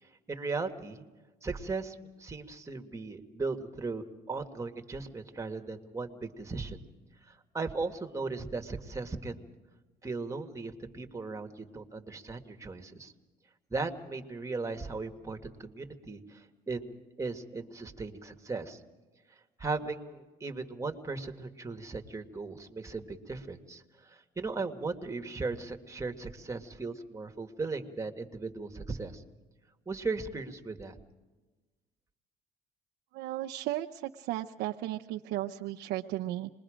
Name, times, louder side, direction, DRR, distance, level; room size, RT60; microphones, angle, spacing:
voice 1, 0.3-1.0 1.4-6.8 7.5-9.4 10.0-13.1 13.7-18.8 19.6-23.8 24.1-29.2 29.9-30.9, right 3 dB, 20° right, 5 dB, 1.9 m, -37 dB
voice 2, 33.1-36.5, right 14 dB, 90° right, 2 dB, 0.7 m, -35 dB
27.0 x 21.5 x 5.1 m, 1.2 s
cardioid pair, 110°, 17 cm